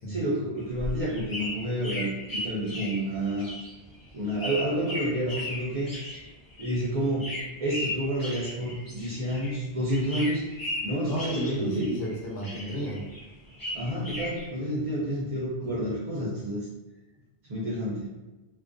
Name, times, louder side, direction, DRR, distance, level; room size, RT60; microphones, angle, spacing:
voice 1, 0.1-3.5 4.1-5.9 6.6-7.3 7.6-10.4 10.8-11.9 13.7-16.7 17.5-18.1, equal, 50° right, -6 dB, 0.4 m, -29 dB
sound 1, 0.6-9.6 9.9-12.1 12.4-14.5, left 1 dB, 25° left, 0.6 m, -37 dB
voice 2, 11.0-13.1 15.6-15.7, equal, 75° left, -3 dB, 1.0 m, -33 dB
2.3 x 2.2 x 2.5 m, 1.1 s
omnidirectional pair, 1.1 m